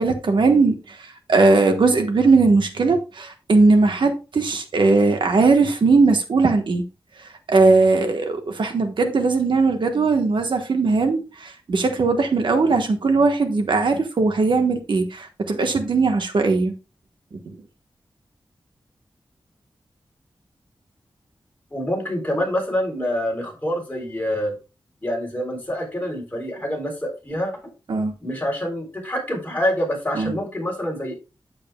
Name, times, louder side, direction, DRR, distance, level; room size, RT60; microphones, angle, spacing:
voice 1, 0.0-6.8 7.5-16.7 17.3-17.6 27.9-28.1 30.1-30.4, right 3 dB, 70° right, 1.2 m, -19 dB
voice 2, 21.7-24.5 25.0-27.5 28.2-31.1, equal, 20° left, 3.8 m, -26 dB
8.8 x 7.6 x 2.3 m
wide cardioid pair, 100°, 8 cm